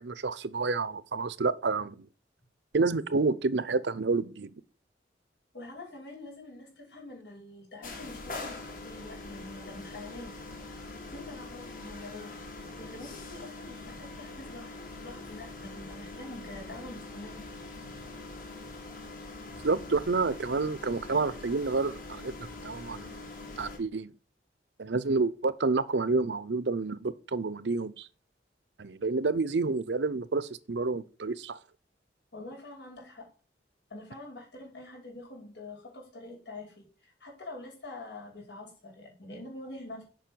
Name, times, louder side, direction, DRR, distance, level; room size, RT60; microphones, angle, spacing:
voice 1, 0.0-2.1 2.7-4.5 19.6-22.3 22.6-23.2 23.6-24.1 24.8-28.1 28.8-31.6, right 3 dB, 85° right, 0.7 m, -29 dB
voice 2, 5.5-10.3 11.0-12.3 12.8-14.7 15.0-17.4 32.3-33.3 33.9-40.0, left 2 dB, 80° left, 5.4 m, -45 dB
sound 1, 7.8-23.8, left 2 dB, 50° left, 2.3 m, -43 dB
7.6 x 5.6 x 7.0 m
head